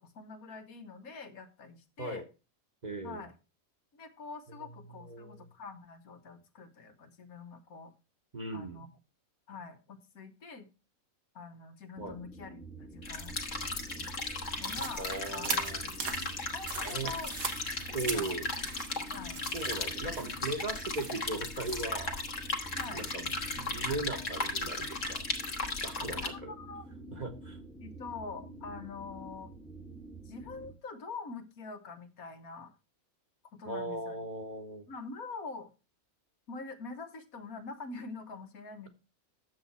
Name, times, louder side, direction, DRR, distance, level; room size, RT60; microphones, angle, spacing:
voice 1, 0.0-2.2 3.0-3.3 3.9-7.9 8.5-8.9 9.5-10.7 11.3-14.1 14.6-15.7 16.5-17.3 18.0-18.4 19.1-19.4 22.7-23.1 26.2-26.9 27.8-29.5 30.2-32.7 33.6-34.2 34.9-35.7 36.5-38.9, left 4 dB, 85° left, 5 dB, 1.8 m, -45 dB
voice 2, 2.8-3.2 5.0-5.5 8.3-8.9 12.0-12.2 15.0-16.4 16.8-17.1 17.9-18.5 19.5-22.2 22.9-25.2 25.8-26.5 27.1-27.6 33.6-34.8, right 2 dB, 35° right, 5 dB, 1.2 m, -38 dB
sound 1, 12.0-30.7, right 2 dB, ahead, 1.0 m, -48 dB
sound 2, 13.0-26.3, left 3 dB, 60° left, 1.7 m, -36 dB
sound 3, 14.7-21.9, right 5 dB, 80° right, 1.7 m, -42 dB
9.4 x 7.3 x 4.2 m, 0.31 s
omnidirectional pair, 1.5 m